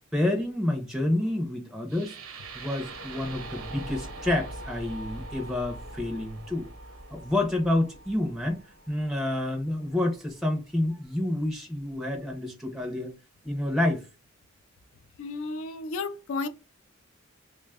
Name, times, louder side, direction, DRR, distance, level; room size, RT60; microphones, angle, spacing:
voice 1, 0.1-6.7 7.1-13.1 13.4-14.0, left 1 dB, ahead, 0.5 m, -29 dB
sound 1, 1.9-9.9, right 2 dB, 75° right, 0.8 m, -42 dB
voice 2, 15.2-16.5, left 3 dB, 75° left, 0.4 m, -32 dB
3.2 x 2.2 x 3.4 m
head